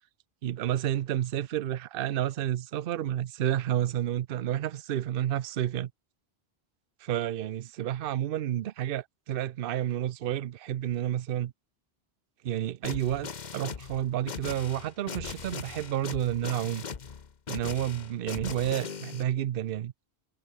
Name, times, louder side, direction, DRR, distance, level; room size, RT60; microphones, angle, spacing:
voice 1, 0.4-5.9 7.0-11.5 12.4-16.8 17.5-19.9, right 11 dB, 65° right, 0.8 m, -30 dB
sound 1, 12.8-19.2, left 6 dB, 45° left, 1.0 m, -39 dB
omnidirectional pair, 1.1 m